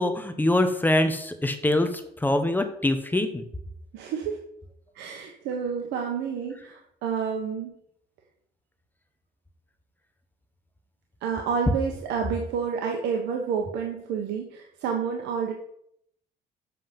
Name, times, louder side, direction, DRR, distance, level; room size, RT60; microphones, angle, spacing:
voice 1, 0.0-3.5, left 1 dB, 10° left, 8 dB, 1.1 m, -24 dB
voice 2, 3.9-4.4 4.9-7.7 11.2-15.5, right 6 dB, 85° right, 2 dB, 1.3 m, -29 dB
7.9 x 7.7 x 5.4 m, 0.71 s
cardioid pair, 110°, 17 cm